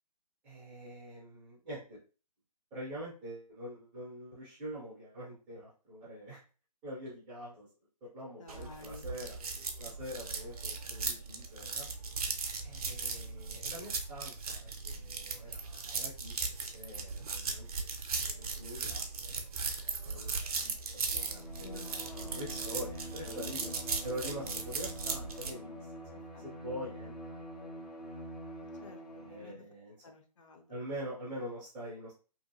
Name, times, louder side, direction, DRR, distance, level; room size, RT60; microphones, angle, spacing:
voice 1, 0.4-2.0 2.7-6.4 6.8-7.7 8.1-9.4 9.8-11.9 12.6-17.9 18.2-21.8 22.3-23.7 24.0-25.8 26.1-28.0 29.1-29.9 30.7-32.1, equal, 10° right, -8 dB, 0.3 m, -45 dB
voice 2, 8.4-9.1 21.6-22.4 23.3-23.8 26.3-26.5 28.8-29.5 30.0-30.8 31.3-31.4, left 3 dB, 50° left, 5 dB, 0.5 m, -51 dB
sound 1, 8.5-25.5, right 4 dB, 65° right, 0.5 m, -38 dB
Bowed string instrument, 21.1-29.6, equal, 70° left, 0.9 m, -46 dB
2.7 x 2.4 x 2.4 m, 0.36 s
figure-of-eight pair, 140°, 21 cm